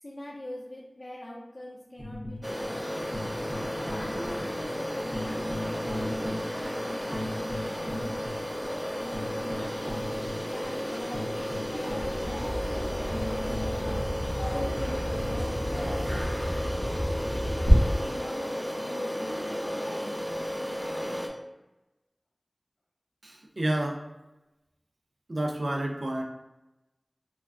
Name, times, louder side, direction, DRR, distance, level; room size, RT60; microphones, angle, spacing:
voice 1, 0.0-3.2 3.8-10.0 10.5-14.0 14.5-16.0 17.9-20.2, left 1 dB, 50° left, -4 dB, 0.5 m, -43 dB
sound 1, 2.0-13.9, left 1 dB, 35° right, 0.7 m, -38 dB
sound 2, 2.4-21.3, equal, ahead, 0.5 m, -33 dB
Bird vocalization bird call bird song, 12.0-17.7, equal, 85° left, 0.8 m, -33 dB
voice 2, 23.2-24.0 25.3-26.2, right 1 dB, 75° right, 2 dB, 0.4 m, -29 dB
3.2 x 2.1 x 2.4 m, 1.0 s
wide cardioid pair, 40°, 0 cm